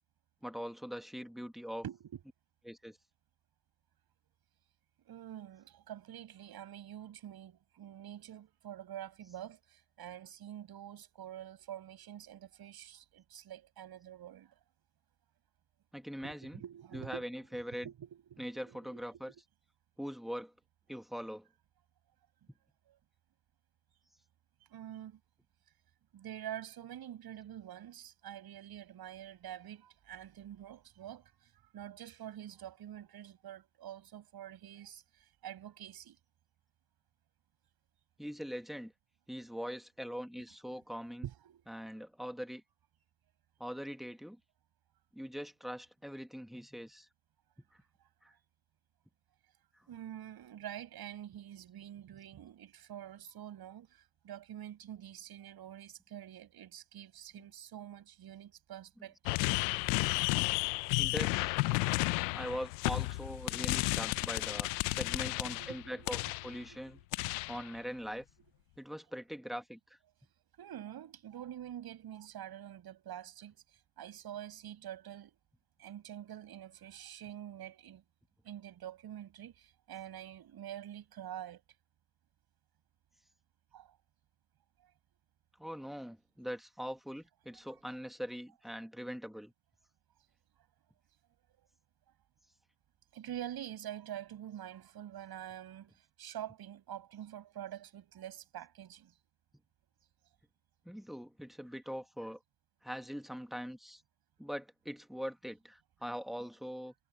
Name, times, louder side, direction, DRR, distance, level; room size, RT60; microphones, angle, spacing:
voice 1, 0.4-1.8 2.7-3.0 15.9-16.6 16.9-17.9 18.4-19.3 20.0-20.5 20.9-21.5 38.2-38.9 39.3-41.3 41.7-42.6 43.6-44.4 45.1-47.1 47.7-47.8 48.2-48.3 61.0-61.6 62.3-67.0 67.5-68.3 68.8-70.0 85.6-89.5 100.9-102.4 102.8-104.0 104.4-106.9, equal, ahead, 2.1 m, -42 dB
voice 2, 1.8-2.2 5.1-14.5 16.2-19.2 22.9-23.0 24.7-25.2 26.1-36.2 41.2-41.6 49.9-59.4 64.4-64.5 65.5-67.1 70.6-73.6 74.0-75.4 75.8-78.0 78.4-81.6 83.7-84.0 84.8-84.9 93.1-99.1, right 11 dB, 50° right, 7.5 m, -47 dB
sound 1, 59.3-66.6 67.1-67.7, left 27 dB, 70° left, 0.9 m, -32 dB
hypercardioid pair, 80°, 49 cm